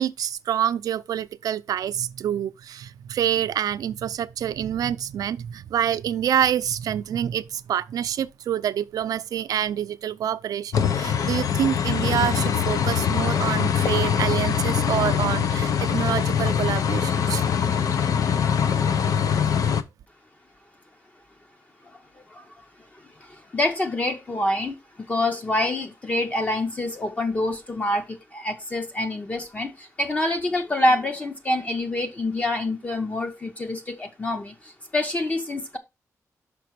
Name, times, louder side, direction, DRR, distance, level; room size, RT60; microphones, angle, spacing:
voice 1, 0.0-17.4, right 10 dB, 90° right, 0.4 m, -27 dB
sound 1, 10.7-19.8, left 7 dB, 70° left, 0.6 m, -23 dB
voice 2, 23.2-35.8, left 1 dB, 25° left, 0.7 m, -26 dB
5.9 x 4.9 x 4.5 m
wide cardioid pair, 175°, 6 cm